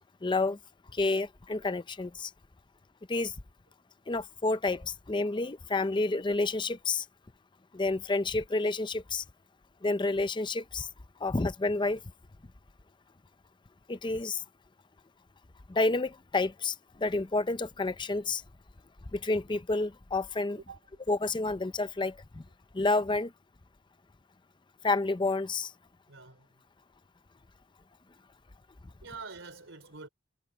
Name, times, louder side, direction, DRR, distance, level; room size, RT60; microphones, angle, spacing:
voice 1, 0.2-0.6 0.9-2.3 3.1-3.3 4.1-7.1 7.7-9.2 9.8-10.9 11.2-12.0 13.9-14.4 15.7-18.4 19.1-20.6 21.1-22.4 22.7-23.3 24.8-25.7, left 3 dB, 25° left, 0.6 m, -29 dB
voice 2, 26.1-26.5 29.0-30.1, right 4 dB, 70° right, 4.2 m, -45 dB
head